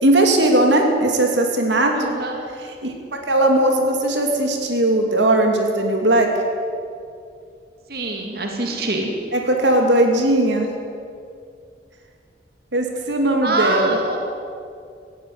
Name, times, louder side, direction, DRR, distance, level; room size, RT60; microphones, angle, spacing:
voice 1, 0.0-1.9 2.8-2.9 3.3-6.3 9.3-10.7 12.7-14.0, right 1 dB, 85° right, 3 dB, 2.8 m, -18 dB
voice 2, 1.9-2.4 7.9-9.1 13.4-14.2, right 2 dB, 55° right, 2 dB, 2.6 m, -24 dB
17.5 x 16.0 x 9.5 m, 2.3 s
head